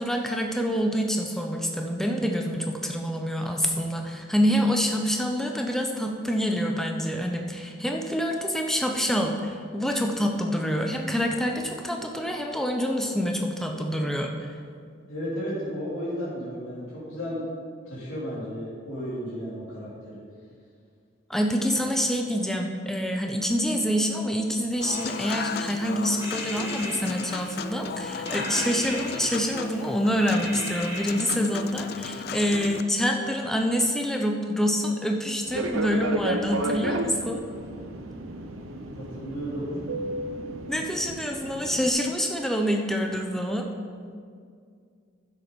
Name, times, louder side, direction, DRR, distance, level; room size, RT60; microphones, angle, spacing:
voice 1, 0.0-14.5 21.3-37.4 40.7-43.7, equal, ahead, 2 dB, 0.7 m, -26 dB
voice 2, 15.1-17.5 17.9-20.2 38.4-39.7, equal, 85° left, -7 dB, 3.1 m, -34 dB
Human voice / Acoustic guitar / Piano, 24.8-32.8, left 6 dB, 50° left, 0.4 m, -35 dB
sound 1, 24.9-25.8 26.2-27.8 28.2-29.9 30.3-31.2, equal, 15° right, 2.0 m, -39 dB
Fixed-wing aircraft airplane, 35.5-41.9, right 1 dB, 90° right, 0.8 m, -32 dB
10.5 x 7.7 x 5.3 m, 2.2 s
head